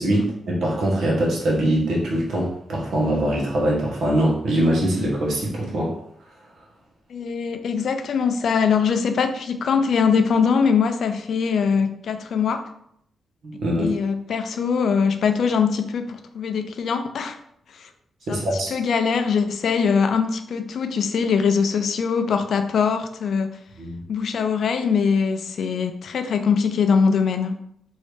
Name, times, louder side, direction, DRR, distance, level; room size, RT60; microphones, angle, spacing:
voice 1, 0.0-6.0 13.4-13.9 18.3-18.7 23.8-24.0, right 1 dB, 75° right, -3 dB, 1.2 m, -22 dB
voice 2, 7.1-12.6 13.8-17.4 17.8-17.9 18.3-18.4 18.7-23.6 24.1-27.6, left 6 dB, 70° left, 8 dB, 0.4 m, -22 dB
3.1 x 2.7 x 3.2 m, 0.70 s
cardioid pair, 85°, 0 cm